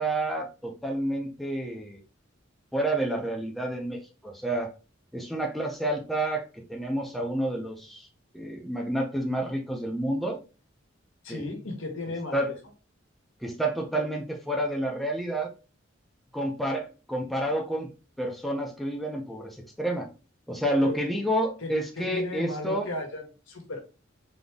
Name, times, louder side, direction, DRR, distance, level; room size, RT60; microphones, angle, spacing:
voice 1, 0.0-2.0 2.7-4.7 5.1-8.1 8.3-10.4 11.3-11.4 12.3-12.5 13.4-15.5 16.3-17.9 18.2-20.1 20.5-22.9, right 1 dB, ahead, 0 dB, 0.7 m, -29 dB
voice 2, 11.2-12.5 20.8-21.0 21.6-23.8, left 2 dB, 80° left, 2 dB, 1.2 m, -35 dB
3.9 x 3.0 x 3.5 m, 0.32 s
head